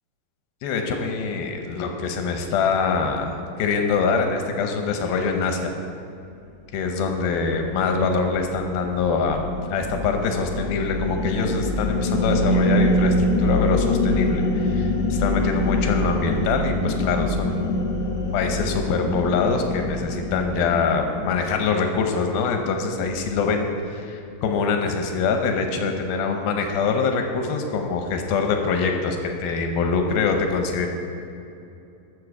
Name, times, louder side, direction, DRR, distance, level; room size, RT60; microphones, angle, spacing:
voice 1, 0.6-5.7 6.7-17.8 18.3-30.9, left 5 dB, 90° left, 4 dB, 2.9 m, -24 dB
sound 1, 7.4-21.9, left 1 dB, 60° left, 1.6 m, -25 dB
13.0 x 7.1 x 4.8 m, 2.7 s
omnidirectional pair, 4.1 m